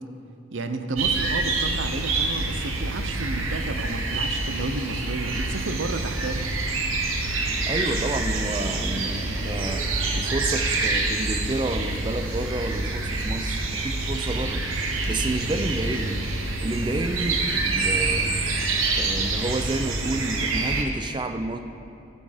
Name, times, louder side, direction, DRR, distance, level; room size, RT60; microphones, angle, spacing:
voice 1, 0.5-6.5, right 3 dB, 65° right, 8 dB, 0.6 m, -31 dB
sound 1, 1.0-20.8, right 3 dB, 85° right, 1.0 m, -26 dB
sound 2, 6.9-11.9, equal, 75° left, 1.6 m, -43 dB
voice 2, 7.7-9.9 10.1-14.6 15.1-16.2 16.6-18.4 19.0-21.6, right 2 dB, 20° right, 8 dB, 0.4 m, -30 dB
12.0 x 6.3 x 5.0 m, 2.6 s
head